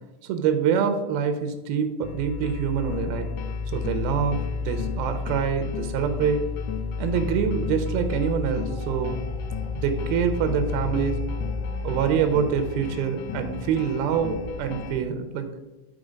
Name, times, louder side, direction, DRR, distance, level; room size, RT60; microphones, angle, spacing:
voice 1, 0.2-3.3 3.7-6.5 7.0-9.2 9.7-11.2 11.8-15.4, right 7 dB, 90° right, 7 dB, 2.7 m, -25 dB
sound 1, 2.0-15.0, left 5 dB, 80° left, 1.9 m, -32 dB
sound 2, 8.7-14.9, left 3 dB, 50° left, 2.6 m, -40 dB
10.0 x 4.0 x 5.1 m, 1.1 s
omnidirectional pair, 4.3 m